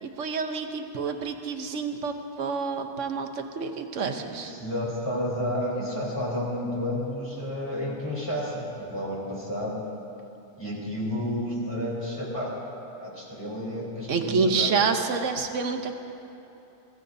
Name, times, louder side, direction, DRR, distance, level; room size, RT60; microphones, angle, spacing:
voice 1, 0.0-4.5 14.1-15.9, right 5 dB, 70° right, 6 dB, 1.2 m, -28 dB
voice 2, 4.0-9.8 10.6-12.6 13.0-14.9, left 1 dB, 20° left, -6 dB, 3.6 m, -31 dB
22.0 x 15.0 x 2.7 m, 2.9 s
omnidirectional pair, 1.3 m